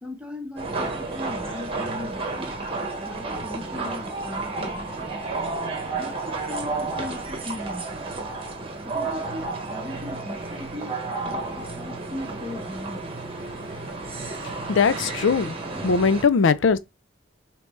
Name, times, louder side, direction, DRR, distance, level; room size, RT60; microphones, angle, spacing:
voice 1, 0.0-2.5 3.0-4.9 5.9-8.0 8.8-13.1, left 1 dB, 5° right, 1.1 m, -38 dB
sound 1, 0.6-16.2, right 3 dB, 30° right, 1.1 m, -32 dB
voice 2, 14.7-15.6 15.8-16.8, left 5 dB, 80° left, 0.4 m, -20 dB
5.0 x 3.0 x 3.2 m
head